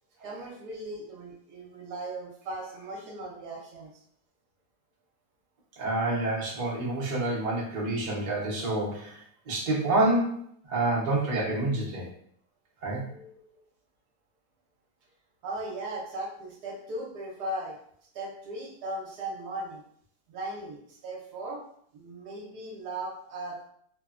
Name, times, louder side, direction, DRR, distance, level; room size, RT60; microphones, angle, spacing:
voice 1, 0.2-3.9 13.0-13.6 15.4-17.8 18.1-19.8 20.3-21.6 21.9-23.6, right 1 dB, 70° right, -2 dB, 1.1 m, -38 dB
voice 2, 5.8-9.2 9.5-10.4 10.7-12.1 12.8-13.0, right 2 dB, 55° right, -5 dB, 0.5 m, -27 dB
3.2 x 2.1 x 2.4 m, 0.65 s
omnidirectional pair, 1.9 m